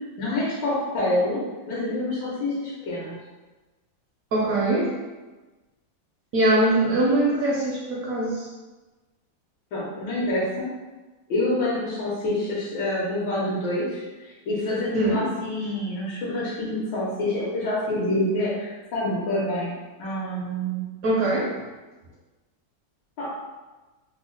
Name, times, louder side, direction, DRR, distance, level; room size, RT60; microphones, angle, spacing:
voice 1, 0.2-3.2 9.7-10.7 11.3-19.7 20.0-20.8 23.2-23.3, left 1 dB, 80° left, -8 dB, 1.5 m, -27 dB
voice 2, 4.3-4.9 6.3-8.5 14.9-15.2 21.0-21.5, right 1 dB, 70° right, -3 dB, 0.8 m, -22 dB
3.4 x 2.1 x 3.7 m, 1.2 s
omnidirectional pair, 2.0 m